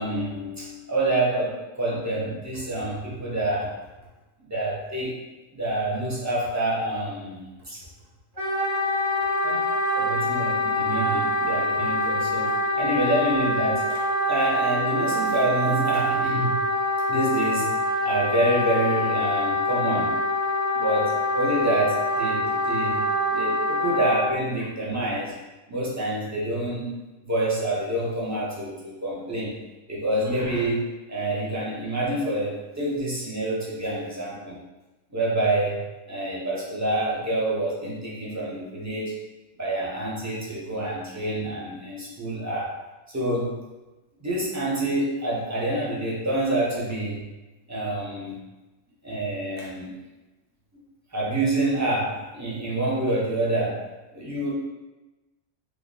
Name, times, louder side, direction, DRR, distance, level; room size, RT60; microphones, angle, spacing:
voice 1, 0.0-3.7 4.5-5.2 5.5-7.8 9.4-16.6 17.1-17.7 18.0-20.1 20.7-23.0 23.3-25.3 25.7-29.6 29.9-34.6 35.1-35.8 36.1-39.2 39.6-42.7 43.1-43.6 44.2-47.3 47.7-48.3 49.0-49.9 51.1-53.8 54.1-54.5, right 1 dB, 25° right, -6 dB, 0.4 m, -27 dB
Wind instrument woodwind instrument, 8.4-24.2, left 1 dB, 45° right, 0.9 m, -25 dB
3.2 x 2.1 x 3.8 m, 1.1 s
omnidirectional pair, 1.4 m